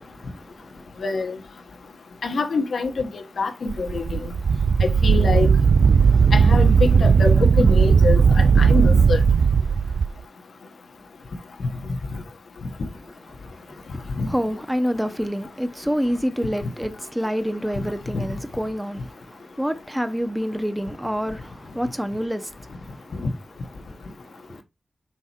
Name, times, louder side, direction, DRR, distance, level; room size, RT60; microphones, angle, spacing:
voice 1, 0.0-0.8 13.5-23.3 23.8-24.6, equal, 5° right, 0.7 m, -28 dB
voice 2, 1.0-1.4 2.2-4.2 5.0-5.5 6.3-9.2 14.2-14.3 18.1-18.2 23.2-23.3, left 3 dB, 85° left, 1.1 m, -25 dB
Wind, 3.7-10.1, right 6 dB, 80° right, 0.3 m, -16 dB
5.8 x 4.1 x 4.3 m
wide cardioid pair, 110°, 0 cm